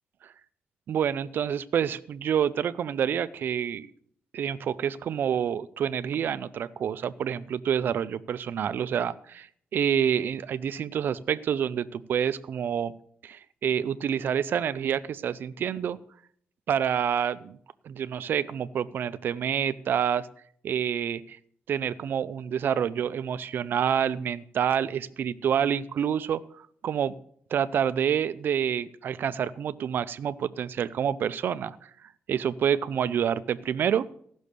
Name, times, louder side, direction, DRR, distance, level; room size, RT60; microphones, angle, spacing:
voice 1, 0.9-3.9 4.3-12.9 13.2-16.0 16.7-17.6 17.8-20.3 20.6-21.4 21.7-27.1 27.5-31.9 32.3-34.0, right 8 dB, 60° right, 14 dB, 0.5 m, -28 dB
15.5 x 6.3 x 6.8 m, 0.64 s
wide cardioid pair, 150°, 4 cm